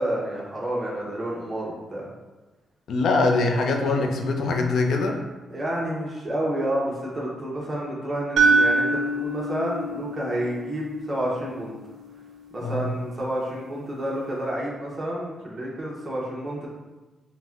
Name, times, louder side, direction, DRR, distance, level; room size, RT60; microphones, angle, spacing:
voice 1, 0.0-2.1 5.5-11.7 12.5-16.7, right 1 dB, 25° right, -5 dB, 0.7 m, -29 dB
voice 2, 2.9-5.2 12.6-12.9, left 3 dB, 75° left, 3 dB, 0.4 m, -23 dB
sound 1, 8.4-12.4, right 3 dB, 75° right, 0.4 m, -25 dB
4.1 x 2.1 x 2.3 m, 1.2 s
cardioid pair, 95°, 0 cm